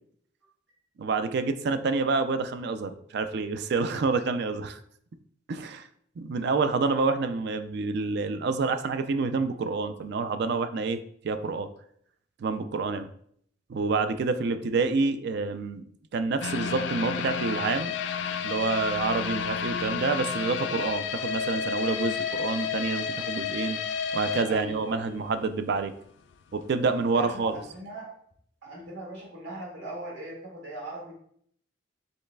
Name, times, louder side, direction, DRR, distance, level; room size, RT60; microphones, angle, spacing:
voice 1, 1.0-4.8 5.5-5.9 6.2-11.7 12.4-13.1 13.7-15.8 16.1-17.9 18.4-23.8 24.1-25.9 26.5-27.5, right 4 dB, 60° right, 10 dB, 0.4 m, -28 dB
sound 1, 16.4-25.4 25.7-25.8 26.3-26.4, left 6 dB, 65° left, 0.3 m, -31 dB
voice 2, 24.5-25.4 27.1-28.1 28.6-31.1, right 1 dB, 75° right, -3 dB, 1.9 m, -39 dB
5.4 x 4.0 x 2.2 m, 0.65 s
head